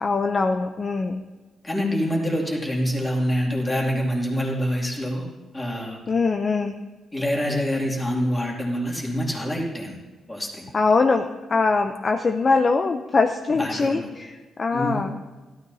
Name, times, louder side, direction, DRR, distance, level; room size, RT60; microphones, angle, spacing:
voice 1, 0.0-1.2 6.1-6.7 10.7-15.3, left 4 dB, 35° left, 5 dB, 0.6 m, -22 dB
voice 2, 1.6-5.2 5.5-6.0 7.1-10.0 10.3-10.7 13.6-14.1 14.7-15.0, equal, 15° left, -2 dB, 2.5 m, -26 dB
16.5 x 13.0 x 2.8 m, 1.2 s
cardioid pair, 125°, 0 cm